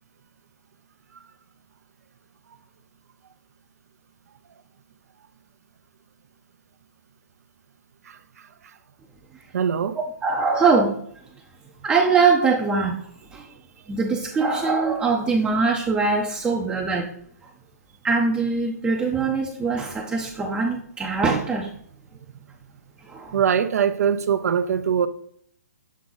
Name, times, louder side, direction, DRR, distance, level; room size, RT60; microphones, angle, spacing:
voice 1, 9.5-10.0 23.3-25.1, right 7 dB, 65° right, 0.5 m, -22 dB
voice 2, 10.2-11.0 11.8-13.0 13.3-13.4 13.9-17.1 18.0-21.7 23.1-23.3, right 4 dB, 10° right, 0.6 m, -22 dB
7.4 x 3.7 x 3.9 m
hypercardioid pair, 145°, 9 cm